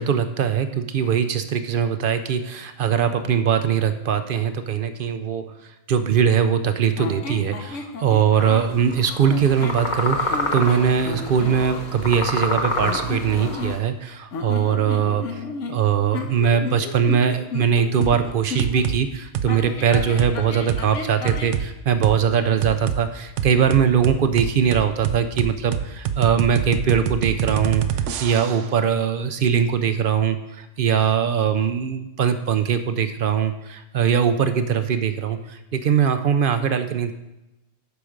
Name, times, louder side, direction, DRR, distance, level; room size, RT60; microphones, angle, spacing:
voice 1, 0.0-5.5 5.9-15.4 15.7-37.1, right 7 dB, 60° right, 10 dB, 0.6 m, -21 dB
sound 1, 7.0-8.7 9.3-9.9 10.3-11.6 12.8-14.0 14.3-18.9 19.5-21.6, left 4 dB, 80° left, 1.2 m, -33 dB
sound 2, 8.4-13.8, left 2 dB, 40° left, 1.0 m, -28 dB
sound 3, 18.0-18.2 18.6-19.0 19.3-19.5 19.9-20.3 20.7-20.8 21.3-21.7 22.0-22.2 22.6-23.0 23.4-28.7, right 9 dB, 80° right, 0.9 m, -25 dB
8.3 x 6.0 x 5.0 m, 0.95 s
omnidirectional pair, 1.3 m